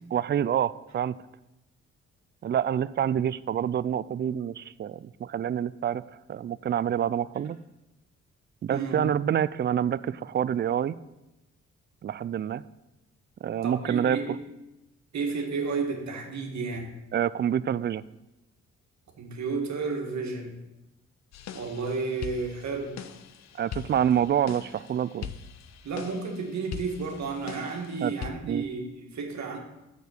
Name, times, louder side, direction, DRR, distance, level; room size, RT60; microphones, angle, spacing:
voice 1, 0.1-1.2 2.4-6.0 6.3-7.6 8.6-10.9 12.0-12.6 13.4-14.2 17.1-18.0 23.6-25.3 28.0-28.1 28.4-28.6, right 9 dB, 35° right, 17 dB, 0.4 m, -27 dB
voice 2, 8.7-9.0 13.6-14.3 15.1-16.9 19.2-20.6 21.5-23.0 25.8-29.6, right 4 dB, 65° right, 2 dB, 1.6 m, -32 dB
sound 1, 21.3-28.3, left 8 dB, 65° left, 0.6 m, -42 dB
6.8 x 6.6 x 6.4 m, 0.97 s
supercardioid pair, 55°, 30 cm